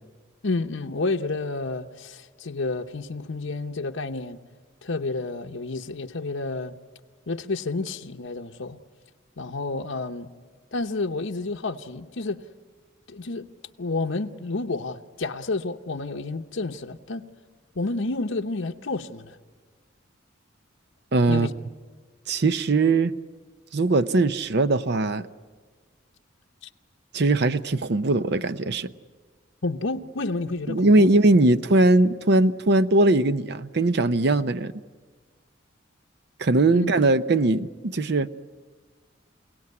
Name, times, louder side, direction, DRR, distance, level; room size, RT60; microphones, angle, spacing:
voice 1, 0.4-4.4 4.8-6.7 7.3-8.8 9.4-10.3 10.7-12.4 13.1-13.5 13.8-17.3 17.8-19.3 21.3-21.5 29.6-31.1 36.7-36.9, left 3 dB, 80° left, 0.9 m, -30 dB
voice 2, 21.1-21.5 22.3-23.1 23.7-25.3 27.1-28.9 30.7-34.7 36.4-38.3, right 2 dB, 55° right, 0.7 m, -20 dB
28.5 x 17.5 x 9.6 m
head